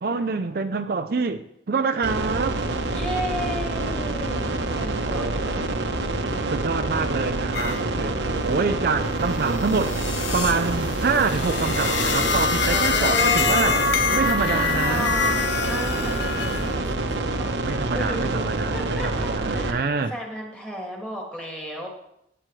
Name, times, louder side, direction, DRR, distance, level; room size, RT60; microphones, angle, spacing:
voice 1, 0.0-2.6 5.0-5.4 6.5-8.2 8.4-10.0 10.3-13.7 14.1-15.1 17.6-20.1, right 4 dB, 55° right, 8 dB, 0.5 m, -26 dB
sound 1, 2.0-19.7, right 2 dB, 80° right, 1.0 m, -27 dB
voice 2, 2.9-5.8 12.6-13.8 14.3-18.4 18.7-21.9, equal, 5° left, -1 dB, 2.2 m, -34 dB
sound 2, 7.5-7.8 8.2-16.8, left 5 dB, 85° left, 1.0 m, -26 dB
16.5 x 8.9 x 3.2 m, 0.78 s
head